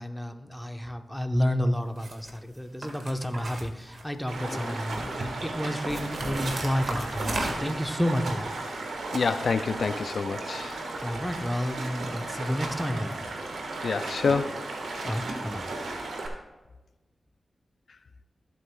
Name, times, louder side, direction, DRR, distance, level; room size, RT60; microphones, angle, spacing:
voice 1, 0.0-8.5 11.0-13.2 15.0-15.7, equal, 5° left, 6 dB, 1.0 m, -30 dB
sound 1, 2.0-2.3 2.8-4.3 4.6-5.3 5.9-7.8, right 2 dB, 65° right, 1.8 m, -35 dB
Stream, 4.3-16.3, right 2 dB, 90° right, 1.5 m, -35 dB
voice 2, 9.1-10.8 13.8-14.5 15.0-15.1, left 5 dB, 75° left, 12 dB, 0.3 m, -27 dB
15.0 x 8.0 x 2.3 m, 1.1 s
cardioid pair, 45°, 0 cm